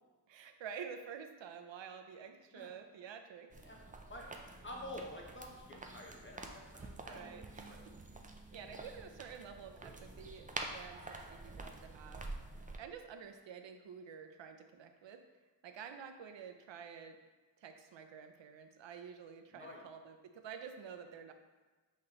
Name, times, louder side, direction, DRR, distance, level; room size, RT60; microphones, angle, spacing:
voice 1, 0.3-3.5 7.1-7.8 8.5-12.3 12.8-15.2 15.6-17.2 17.6-21.3, right 7 dB, 85° right, 6 dB, 0.6 m, -49 dB
sound 1, 3.5-12.8, right 2 dB, 20° right, 0.4 m, -48 dB
voice 2, 3.6-4.4 4.6-7.9 19.5-19.9, left 1 dB, 25° left, 0 dB, 0.8 m, -49 dB
5.6 x 3.1 x 2.9 m, 1.3 s
wide cardioid pair, 90°, 43 cm